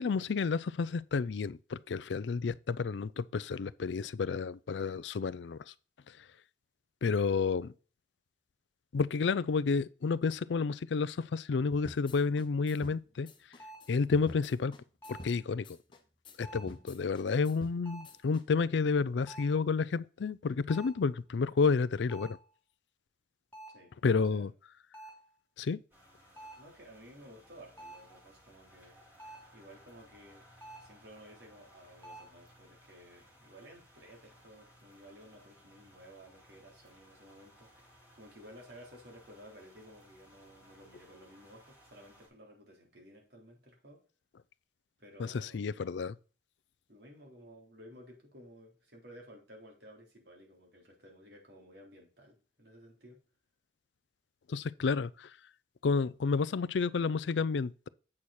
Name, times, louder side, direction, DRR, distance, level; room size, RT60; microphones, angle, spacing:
voice 1, 0.0-5.6 7.0-7.7 8.9-13.3 13.9-14.7 15.1-15.7 16.4-22.4 24.0-24.5 25.6-25.8 45.2-45.3 45.5-46.1 54.5-55.3 55.8-57.9, left 4 dB, 80° left, 0.4 m, -30 dB
sound 1, 11.7-18.4, left 1 dB, 25° left, 1.1 m, -50 dB
sound 2, 13.6-14.0 15.0-15.4 16.4-16.8 17.9-18.2 19.3-19.6 20.7-21.1 22.1-22.5 23.5-23.9 24.9-25.3 26.4-26.7 27.8-28.2 29.2-29.6 30.6-31.0 32.0-32.3, right 1 dB, 10° left, 3.0 m, -49 dB
sound 3, 25.9-42.3, equal, 10° right, 4.1 m, -61 dB
voice 2, 26.6-29.0 29.5-30.5 30.8-37.9 38.1-44.0 45.0-45.6 46.9-53.2, equal, 65° right, 3.6 m, -55 dB
8.6 x 6.4 x 4.2 m
head